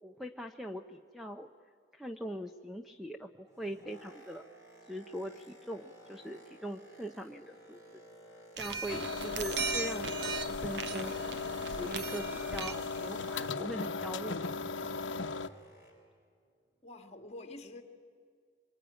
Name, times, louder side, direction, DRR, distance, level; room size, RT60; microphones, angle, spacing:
voice 1, 0.0-1.5 1.9-4.4 4.9-7.8 8.6-11.3 11.7-15.1, equal, ahead, 5 dB, 0.7 m, -42 dB
Boat Water vehicle, 3.3-9.4 9.7-16.2 16.8-16.9, right 1 dB, 15° right, 6.2 m, -57 dB
sound 1, 8.6-13.5, right 5 dB, 65° right, 1.1 m, -39 dB
sound 2, 8.9-15.5, left 4 dB, 80° left, 0.9 m, -37 dB
voice 2, 16.8-17.8, left 2 dB, 35° left, 6 dB, 2.1 m, -47 dB
25.5 x 23.5 x 10.0 m, 2.1 s
head